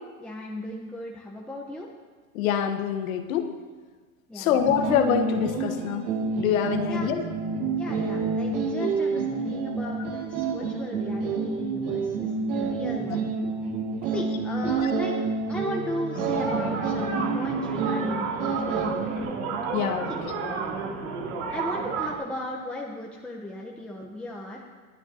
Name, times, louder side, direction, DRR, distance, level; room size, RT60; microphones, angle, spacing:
voice 1, 0.2-1.9 4.3-4.6 6.9-7.1 7.7-13.3 14.1-15.2 15.5-19.3 20.1-20.2 21.5-24.6, left 1 dB, 5° left, -2 dB, 0.9 m, -36 dB
voice 2, 2.3-3.5 4.3-6.1 6.4-7.2 14.6-14.8 19.7-20.3, left 9 dB, 75° left, 7 dB, 1.3 m, -25 dB
sound 1, 4.6-19.2, right 4 dB, 60° right, 2.6 m, -28 dB
sound 2, 16.1-22.1, right 4 dB, 85° right, 3.1 m, -31 dB
27.0 x 9.7 x 2.9 m, 1.5 s
supercardioid pair, 130°, 41 cm